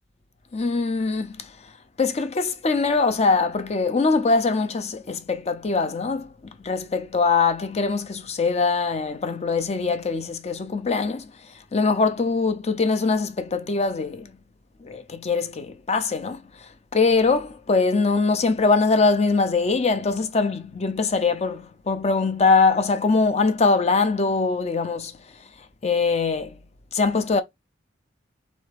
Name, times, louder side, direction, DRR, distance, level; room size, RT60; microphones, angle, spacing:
voice 1, 0.5-1.5 2.0-6.3 6.6-11.3 11.7-14.3 14.8-16.4 16.9-25.1 25.8-26.5 26.9-27.4, left 4 dB, 35° left, 0.5 m, -22 dB
4.2 x 3.4 x 3.2 m
head